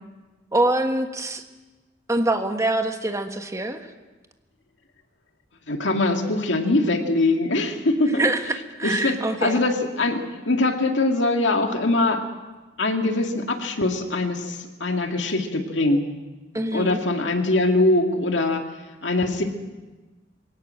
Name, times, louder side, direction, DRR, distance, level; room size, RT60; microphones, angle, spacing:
voice 1, 0.5-1.4 2.1-3.9 8.1-9.7 16.5-17.0, right 2 dB, 15° right, 6 dB, 1.4 m, -24 dB
voice 2, 5.7-8.3 8.8-12.2 12.8-16.1 16.7-18.6 19.0-19.4, left 2 dB, 75° left, 4 dB, 2.2 m, -22 dB
21.0 x 18.0 x 7.6 m, 1.2 s
head